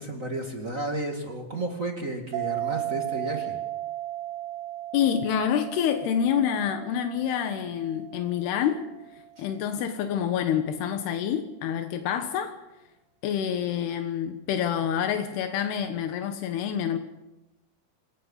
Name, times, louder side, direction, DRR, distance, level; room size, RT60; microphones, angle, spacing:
voice 1, 0.0-3.6 9.4-9.5, right 2 dB, 25° right, 2 dB, 2.1 m, -32 dB
sound 1, 2.3-9.4, right 14 dB, 85° right, 3.0 m, -35 dB
voice 2, 4.9-8.8 9.4-12.5 13.2-17.0, left 9 dB, 85° left, 7 dB, 3.2 m, -27 dB
27.0 x 19.5 x 5.7 m, 0.96 s
omnidirectional pair, 4.5 m